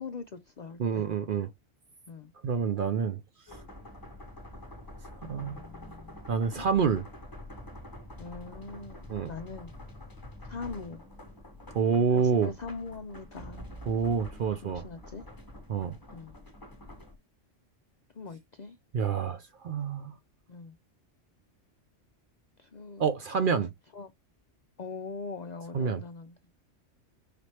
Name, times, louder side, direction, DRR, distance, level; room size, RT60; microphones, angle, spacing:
voice 1, 0.0-1.1 2.1-2.3 5.2-6.2 6.6-6.7 8.2-9.7 10.4-11.0 12.1-13.8 14.6-15.2 16.1-16.3 18.1-18.8 20.5-20.8 22.6-23.0 23.9-24.1 24.8-26.3, left 4 dB, 65° left, 0.4 m, -42 dB
voice 2, 0.8-1.5 2.4-3.2 5.3-5.6 6.3-7.0 9.1-9.3 11.7-12.5 13.9-14.8 15.7-15.9 18.9-20.1 23.0-23.7 25.7-26.0, right 6 dB, 60° right, 0.6 m, -27 dB
sound 1, 3.5-17.2, left 1 dB, 20° left, 0.9 m, -46 dB
4.9 x 3.1 x 2.8 m
omnidirectional pair, 1.3 m